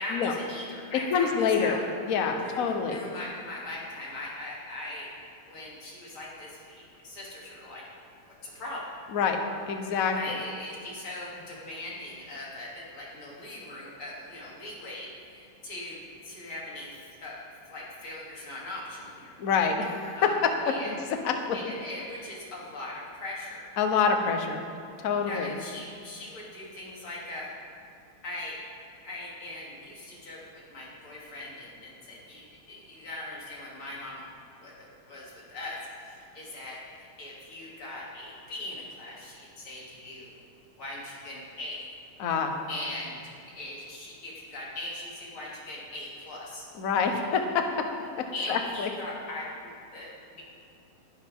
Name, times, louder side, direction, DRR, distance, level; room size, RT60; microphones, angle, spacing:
voice 1, 0.0-1.8 2.4-5.1 5.5-7.9 8.4-8.9 10.1-17.4 17.7-19.3 20.2-20.3 20.7-20.9 21.5-23.7 25.3-27.5 28.2-28.6 29.0-34.2 34.6-40.3 40.8-41.8 42.7-46.7 48.3-50.4, left 2 dB, 80° left, -5 dB, 3.9 m, -40 dB
voice 2, 1.1-1.8 2.0-3.0 9.1-10.4 19.4-21.6 23.8-24.6 25.0-25.6 42.2-42.5 46.8-47.9 48.2-48.9, left 5 dB, 50° left, 5 dB, 1.2 m, -27 dB
19.5 x 11.5 x 3.7 m, 2.5 s
omnidirectional pair, 2.3 m